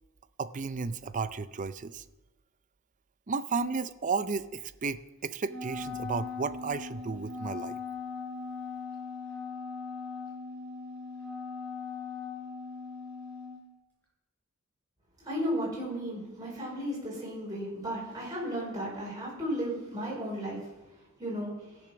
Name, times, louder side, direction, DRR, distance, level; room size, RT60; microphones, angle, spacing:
voice 1, 0.4-2.0 3.3-7.8, right 4 dB, 35° right, 14 dB, 0.5 m, -33 dB
Wind instrument woodwind instrument, 5.4-13.6, left 4 dB, 10° left, 5.4 m, -39 dB
voice 2, 15.2-20.6 21.2-21.5, equal, 20° right, -6 dB, 4.9 m, -34 dB
18.0 x 7.1 x 5.9 m, 1.1 s
head